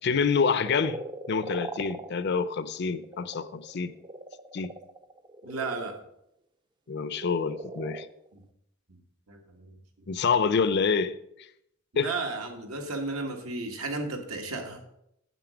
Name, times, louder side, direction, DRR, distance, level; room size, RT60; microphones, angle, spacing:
voice 1, 0.0-1.0 1.3-3.9 4.5-4.7 6.9-8.1 10.1-11.2 12.0-12.1, left 5 dB, 50° left, 0.5 m, -27 dB
sound 1, 0.6-6.0 7.0-8.3, right 2 dB, 20° right, 0.4 m, -41 dB
voice 2, 5.4-6.0 8.3-8.4 9.3-9.7 11.9-14.8, right 3 dB, 90° right, 1.7 m, -34 dB
9.2 x 7.5 x 5.1 m
head